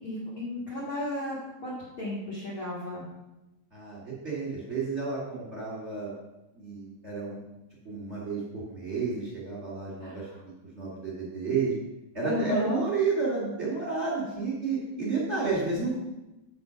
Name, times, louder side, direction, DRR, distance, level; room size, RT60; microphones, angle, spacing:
voice 1, 0.0-3.0 10.0-10.2 12.2-12.9, left 1 dB, 45° left, -7 dB, 2.0 m, -34 dB
voice 2, 3.7-6.2 6.5-7.4 7.8-10.3 10.7-11.7 12.1-16.0, right 4 dB, 20° right, -5 dB, 2.7 m, -31 dB
7.6 x 6.0 x 5.4 m, 0.98 s
omnidirectional pair, 4.1 m